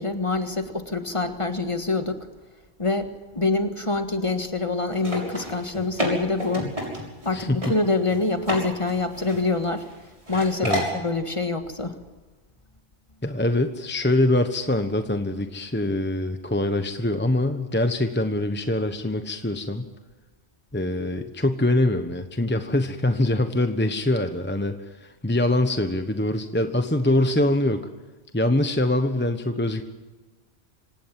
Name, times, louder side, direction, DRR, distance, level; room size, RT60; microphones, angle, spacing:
voice 1, 0.0-2.3 2.8-3.1 3.3-6.7 7.2-9.9 10.3-12.0, left 3 dB, 30° left, 7 dB, 1.7 m, -25 dB
sound 1, 4.9-7.3 7.6-7.7 8.1-8.6 8.9-9.9 10.3-10.9, equal, 30° right, 6.5 m, -29 dB
voice 2, 7.3-7.7 10.6-10.8 13.2-19.9 20.7-27.9 28.3-29.8, left 1 dB, 10° left, 7 dB, 1.1 m, -24 dB
26.5 x 17.0 x 7.7 m, 1.3 s
omnidirectional pair, 1.1 m